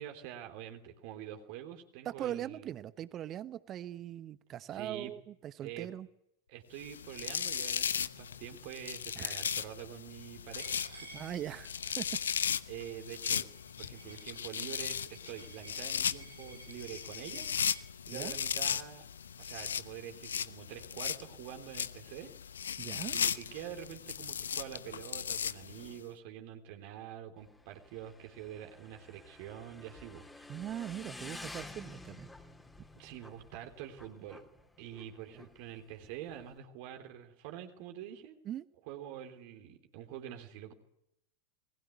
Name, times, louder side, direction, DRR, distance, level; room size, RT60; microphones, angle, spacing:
voice 1, 0.0-2.7 4.7-5.1 5.6-5.9 6.5-11.1 12.7-13.5 13.8-17.5 18.1-19.0 19.4-22.3 23.1-30.5 32.9-34.4 34.8-38.4 38.9-40.7, right 11 dB, 45° right, 4 dB, 3.4 m, -46 dB
voice 2, 2.0-6.1 9.2-9.4 11.1-12.1 18.1-18.4 22.8-23.2 30.5-32.3 35.3-35.5 38.4-38.6, right 11 dB, 30° right, 16 dB, 1.0 m, -41 dB
sound 1, 6.8-26.0, left 7 dB, 70° left, 0.9 m, -37 dB
Coin (dropping), 10.6-17.8, right 2 dB, 85° right, 4.8 m, -54 dB
Motorcycle / Engine, 27.4-36.6, left 2 dB, 10° left, 3.7 m, -51 dB
28.0 x 21.0 x 8.3 m, 0.82 s
figure-of-eight pair, 90°, 0 cm